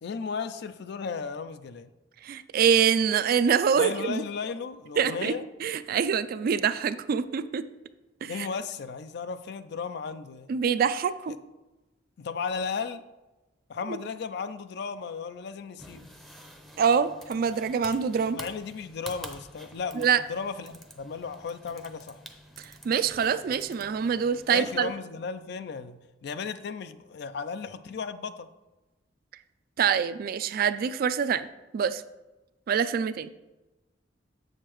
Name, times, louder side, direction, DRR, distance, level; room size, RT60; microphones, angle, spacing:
voice 1, 0.0-1.9 3.8-5.4 8.3-10.5 12.2-13.0 13.7-16.1 18.3-22.2 24.5-28.5, left 5 dB, 65° left, 12 dB, 0.4 m, -35 dB
voice 2, 2.2-4.2 5.0-5.3 5.6-7.6 8.2-8.5 10.5-11.4 13.9-14.0 16.8-18.4 20.0-20.2 22.6-24.9 29.8-31.5 31.7-32.0 32.7-33.3, right 7 dB, 50° right, 13 dB, 0.3 m, -25 dB
sound 1, 15.8-24.9, equal, ahead, 0.6 m, -48 dB
7.5 x 6.5 x 3.0 m, 1.1 s
head